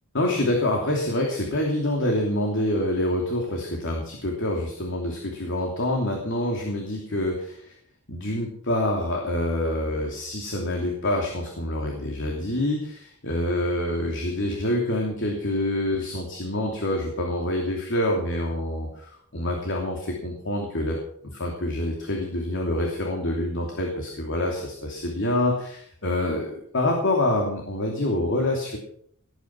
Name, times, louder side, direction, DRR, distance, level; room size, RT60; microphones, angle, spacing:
voice 1, 0.1-7.7 8.1-21.0 21.3-28.8, left 1 dB, 55° left, 1 dB, 2.9 m, -26 dB
19.0 x 9.5 x 6.0 m, 0.64 s
head